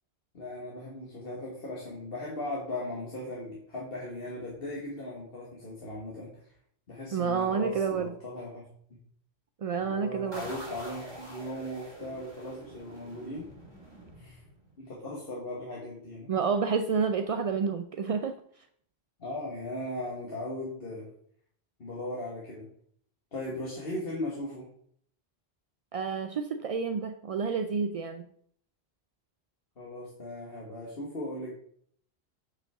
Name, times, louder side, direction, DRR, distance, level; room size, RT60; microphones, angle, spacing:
voice 1, 0.3-6.5 6.9-8.6 9.8-13.5 14.1-14.4 14.8-16.3 19.2-21.1 21.8-22.7 23.3-24.7 29.8-31.5, left 1 dB, 65° left, -5 dB, 1.8 m, -38 dB
voice 2, 7.1-8.1 9.6-10.5 16.3-18.4 25.9-28.2, right 6 dB, 60° right, 7 dB, 0.4 m, -29 dB
sound 1, 10.3-14.8, right 1 dB, 25° right, 1.9 m, -46 dB
8.1 x 5.7 x 3.5 m, 0.63 s
omnidirectional pair, 1.1 m